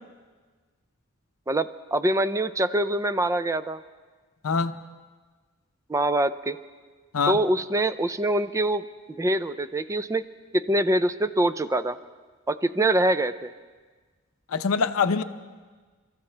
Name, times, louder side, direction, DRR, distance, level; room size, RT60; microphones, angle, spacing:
voice 1, 1.5-3.8 5.9-6.6 7.3-8.9 9.2-10.2 10.5-12.0 12.5-13.5, right 1 dB, 15° right, 13 dB, 0.4 m, -24 dB
voice 2, 4.4-4.7 7.1-7.4 14.5-15.2, left 5 dB, 75° left, 11 dB, 0.6 m, -24 dB
30.0 x 14.0 x 3.3 m, 1.4 s
head